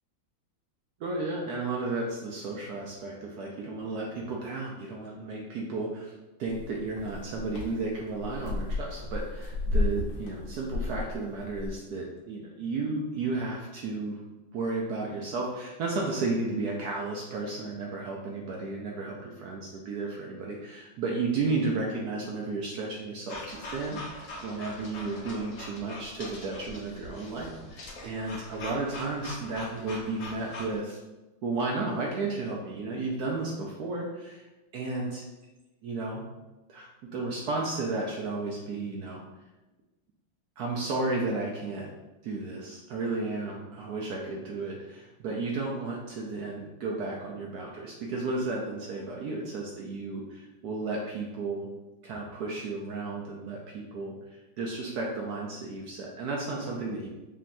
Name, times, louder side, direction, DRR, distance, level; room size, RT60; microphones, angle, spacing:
voice 1, 1.0-14.2 14.5-31.0 31.4-34.5 34.7-35.2 35.8-36.2 36.7-39.2 40.6-41.9 42.2-51.7 52.0-57.1, right 3 dB, 70° right, -1 dB, 0.9 m, -33 dB
sound 1, 6.5-11.7, left 2 dB, 85° left, 1.6 m, -33 dB
sound 2, 23.3-30.8, left 2 dB, 60° left, 0.9 m, -42 dB
5.2 x 2.8 x 2.6 m, 1.1 s
omnidirectional pair, 2.1 m